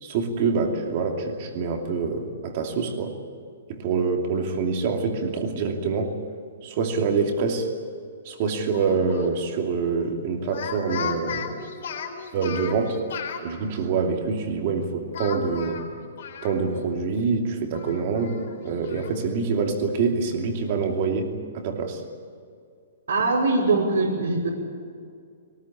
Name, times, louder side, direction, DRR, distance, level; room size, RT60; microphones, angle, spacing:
voice 1, 0.0-3.1 3.7-6.1 6.6-7.7 8.2-11.5 12.3-13.0 13.4-15.8 16.4-22.0, right 4 dB, 30° right, 3 dB, 2.7 m, -26 dB
Speech, 8.7-9.3 10.4-13.4 15.1-16.9 17.2-17.3 17.7-19.1, left 6 dB, 50° left, 4.0 m, -36 dB
voice 2, 23.1-24.5, right 3 dB, 80° right, -4 dB, 5.4 m, -22 dB
22.5 x 20.0 x 8.7 m, 2.3 s
hypercardioid pair, 180°, 0 cm